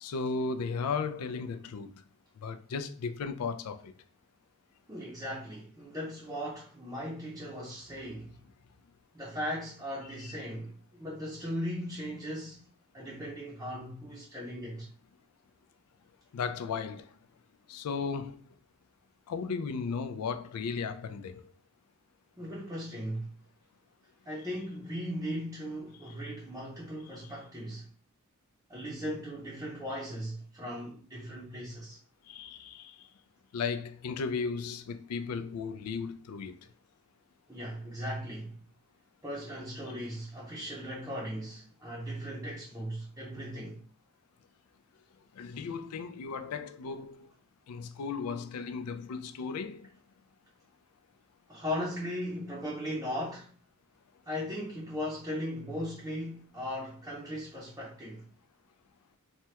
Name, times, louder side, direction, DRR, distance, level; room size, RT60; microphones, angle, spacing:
voice 1, 0.0-1.9 2.4-3.9 16.3-17.1 17.7-18.4 19.3-21.3 32.3-32.9 33.5-36.5 45.4-47.3 47.7-49.9, left 5 dB, 90° left, 0.4 m, -35 dB
voice 2, 4.9-8.4 9.1-12.6 12.9-14.9 22.4-23.3 24.3-27.9 28.7-32.0 37.5-38.6 39.2-43.8 51.5-53.5 54.3-58.3, equal, 15° right, 0.6 m, -38 dB
3.2 x 2.2 x 2.8 m
head